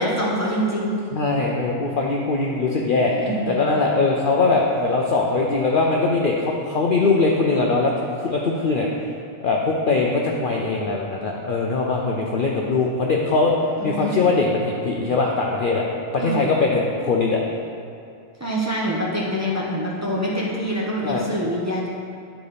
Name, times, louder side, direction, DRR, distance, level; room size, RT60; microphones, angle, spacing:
voice 1, 0.0-1.0 3.2-3.6 13.8-14.2 16.2-16.5 18.4-21.9, equal, 15° right, -6 dB, 1.0 m, -25 dB
voice 2, 1.1-3.1 3.5-8.9 9.4-13.5 13.8-15.9 16.1-17.4 21.0-21.2, left 3 dB, 55° left, -1 dB, 0.6 m, -21 dB
10.5 x 4.1 x 5.0 m, 2.5 s
omnidirectional pair, 1.4 m